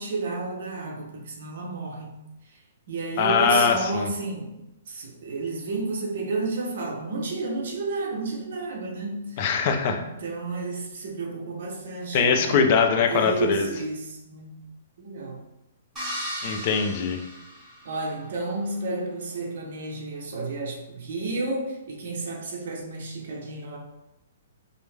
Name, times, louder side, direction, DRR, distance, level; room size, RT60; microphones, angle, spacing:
voice 1, 0.0-2.1 2.5-2.6 2.9-9.5 10.0-12.6 13.1-14.6 15.0-15.4 17.8-23.8, right 3 dB, 55° right, 0 dB, 0.9 m, -31 dB
voice 2, 3.2-4.1 9.4-10.0 12.1-13.7 16.4-17.2, left 5 dB, 35° left, 5 dB, 0.4 m, -22 dB
sound 1, 16.0-18.2, equal, 15° right, 1.2 m, -36 dB
5.2 x 2.1 x 3.3 m, 0.92 s
hypercardioid pair, 170°, 0 cm